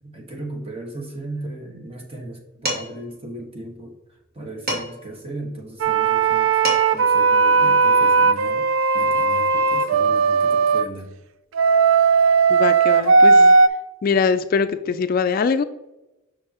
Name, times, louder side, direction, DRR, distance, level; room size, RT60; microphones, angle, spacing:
voice 1, 0.0-3.9 4.3-6.6 6.9-8.7 8.9-11.1, right 2 dB, 30° right, 1 dB, 1.3 m, -36 dB
Dishes pots and pans, 2.7-3.1 4.7-5.1 6.3-6.4 6.6-7.1, equal, 45° right, 2.4 m, -28 dB
sound 1, 5.8-10.8 11.5-13.7, right 4 dB, 70° right, 0.4 m, -16 dB
voice 2, 12.5-13.6 14.0-15.6, left 5 dB, 45° left, 11 dB, 0.3 m, -22 dB
6.6 x 6.2 x 2.9 m, 0.97 s
head